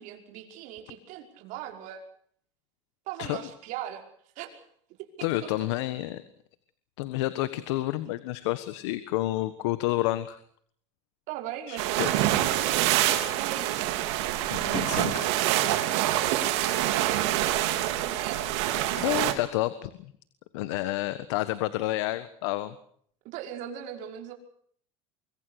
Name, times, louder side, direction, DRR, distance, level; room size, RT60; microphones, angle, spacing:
voice 1, 0.0-2.0 3.1-4.0 4.4-4.6 5.0-5.5 11.3-12.2 12.7-13.8 16.0-18.4 20.8-20.9 23.3-24.3, right 10 dB, 60° right, 3 dB, 5.4 m, -39 dB
voice 2, 5.2-6.2 7.0-10.4 11.7-12.4 14.5-15.4 19.0-20.1 20.5-22.7, left 16 dB, 85° left, 13 dB, 1.4 m, -30 dB
sound 1, 11.8-19.3, right 14 dB, 80° right, 3.5 m, -26 dB
25.0 x 22.5 x 6.5 m, 0.62 s
supercardioid pair, 125°, 14 cm